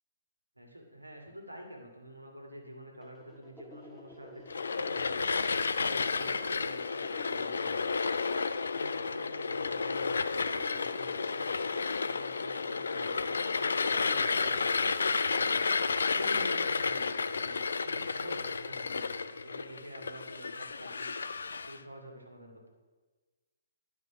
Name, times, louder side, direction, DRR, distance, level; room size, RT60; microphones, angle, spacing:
voice 1, 0.6-5.4 5.7-8.0 8.7-11.7 12.0-14.7 15.3-15.7 16.1-21.1 21.7-22.7, equal, 90° right, 0 dB, 1.8 m, -48 dB
sound 1, 3.0-16.7, left 1 dB, 5° left, 1.4 m, -52 dB
sound 2, 4.5-21.8, left 4 dB, 65° left, 0.4 m, -31 dB
11.0 x 4.8 x 5.9 m, 1.3 s
figure-of-eight pair, 125°, 0 cm